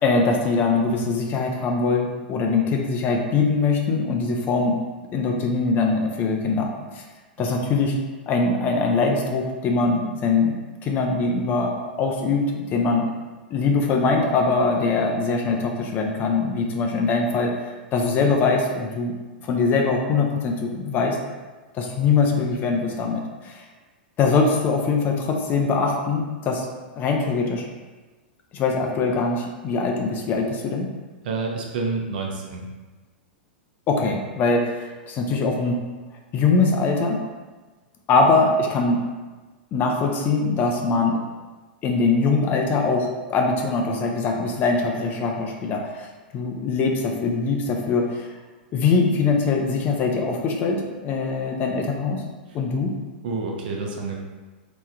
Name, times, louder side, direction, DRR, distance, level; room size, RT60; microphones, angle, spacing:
voice 1, 0.0-4.8 5.1-7.0 7.4-8.0 8.3-10.5 10.8-13.1 13.5-19.1 19.5-21.2 21.7-23.7 24.2-26.7 27.0-27.7 28.5-30.9 33.9-35.8 36.3-37.2 38.1-39.0 39.7-41.2 41.8-46.1 46.3-48.3 48.7-52.2 52.5-52.9, left 4 dB, 35° left, 1 dB, 0.5 m, -22 dB
voice 2, 31.2-32.7 53.2-54.2, right 4 dB, 65° right, 0 dB, 0.7 m, -28 dB
3.5 x 3.0 x 2.2 m, 1.3 s
hypercardioid pair, 110°, 6 cm